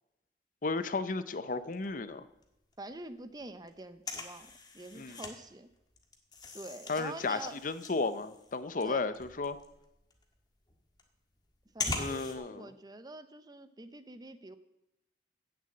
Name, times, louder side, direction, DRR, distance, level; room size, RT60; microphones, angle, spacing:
voice 1, 0.6-2.2 5.0-5.2 6.9-9.6 12.0-12.7, left 3 dB, 50° left, 13 dB, 0.7 m, -34 dB
sound 1, 1.6-2.5 2.7-2.8 3.0-5.3 5.7-12.4, left 3 dB, 25° left, 1.6 m, -42 dB
voice 2, 2.8-5.7 6.5-7.6 8.8-9.2 11.7-14.6, right 2 dB, 20° right, 11 dB, 0.7 m, -46 dB
16.0 x 6.9 x 7.7 m, 0.91 s
head